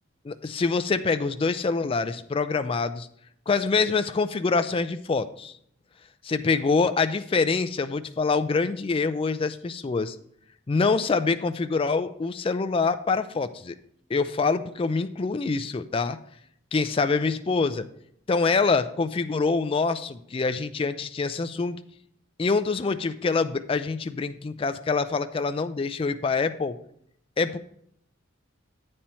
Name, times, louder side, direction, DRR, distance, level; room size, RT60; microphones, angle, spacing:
voice 1, 0.2-3.1 3.5-5.6 6.2-10.2 10.7-13.8 14.1-16.2 16.7-17.9 18.3-21.8 22.4-26.7 27.4-27.6, left 4 dB, 25° left, 10 dB, 0.3 m, -25 dB
8.7 x 4.4 x 5.4 m, 0.71 s
head